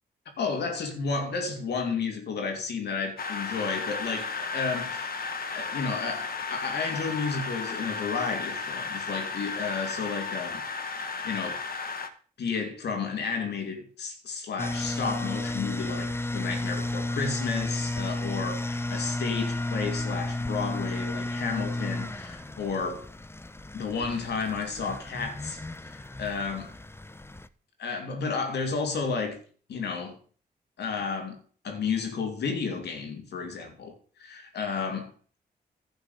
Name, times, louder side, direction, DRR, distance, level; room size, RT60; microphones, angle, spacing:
voice 1, 0.4-5.2 5.5-10.6 11.0-11.6 12.4-23.1 23.7-26.7 27.8-29.4 29.7-30.2 30.8-35.1, left 5 dB, 80° left, 2.8 m, -32 dB
sound 1, 3.2-12.1, left 4 dB, 60° left, 1.4 m, -34 dB
sound 2, 14.6-27.5, left 2 dB, 15° left, 0.8 m, -33 dB
11.5 x 4.8 x 8.2 m
cardioid pair, 55°, 17 cm